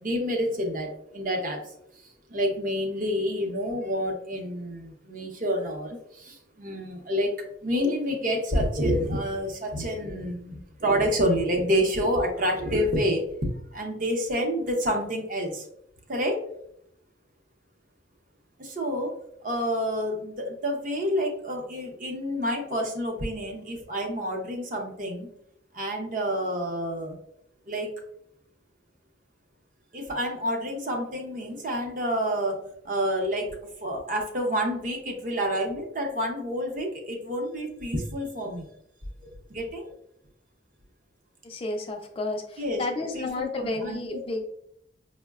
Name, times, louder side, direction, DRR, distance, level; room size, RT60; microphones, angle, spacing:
voice 1, 0.0-1.7 2.3-7.3 7.6-15.6 16.1-16.4 18.6-19.2 19.4-25.3 25.7-27.2 27.7-27.9 29.9-38.7 39.2-39.9 42.6-42.8 43.1-44.2, equal, 45° right, 2 dB, 0.6 m, -28 dB
voice 2, 41.4-44.4, left 2 dB, 30° left, 4 dB, 0.3 m, -32 dB
5.2 x 2.1 x 2.3 m, 0.74 s
head